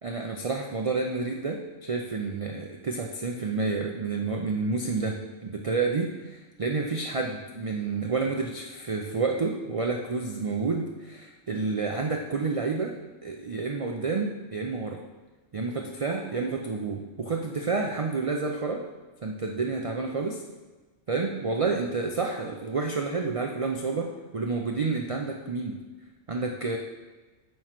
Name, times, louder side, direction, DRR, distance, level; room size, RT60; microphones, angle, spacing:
voice 1, 0.0-13.0 13.2-15.0 15.5-18.8 19.2-20.4 21.1-25.8 26.3-26.8, right 4 dB, 45° right, 1 dB, 0.5 m, -29 dB
9.1 x 3.2 x 5.8 m, 1.2 s
omnidirectional pair, 1.3 m